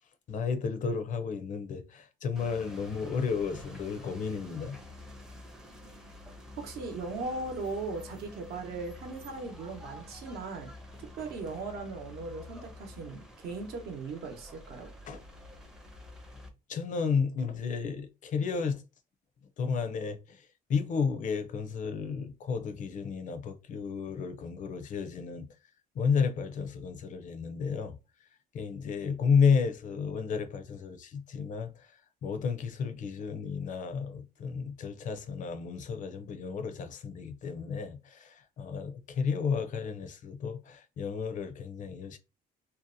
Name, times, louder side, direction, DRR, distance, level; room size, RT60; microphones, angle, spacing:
voice 1, 0.3-4.8 15.1-15.2 16.7-18.8 19.6-25.5 25.9-28.0 28.5-31.9 32.2-42.2, left 6 dB, 50° left, 0.5 m, -32 dB
sound 1, 2.4-16.5, left 1 dB, 5° right, 0.5 m, -48 dB
voice 2, 6.6-10.7 11.2-14.9, right 3 dB, 70° right, 0.8 m, -38 dB
2.7 x 2.1 x 2.5 m
cardioid pair, 110°, 17 cm